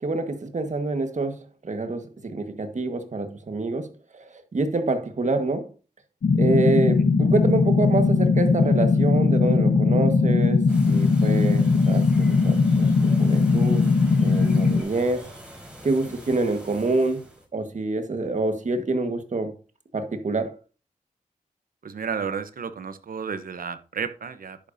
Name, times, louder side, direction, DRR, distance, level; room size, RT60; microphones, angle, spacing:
voice 1, 0.0-5.7 6.4-13.8 14.2-15.3 15.8-17.2 17.5-19.5 19.9-20.6, right 2 dB, 60° right, 1.6 m, -27 dB
sound 1, 6.2-14.8, left 4 dB, 85° left, 1.0 m, -19 dB
sound 2, 10.7-17.5, equal, 5° right, 4.6 m, -43 dB
voice 2, 21.8-24.6, right 6 dB, 85° right, 1.0 m, -32 dB
10.5 x 8.7 x 2.8 m
wide cardioid pair, 70°, 14 cm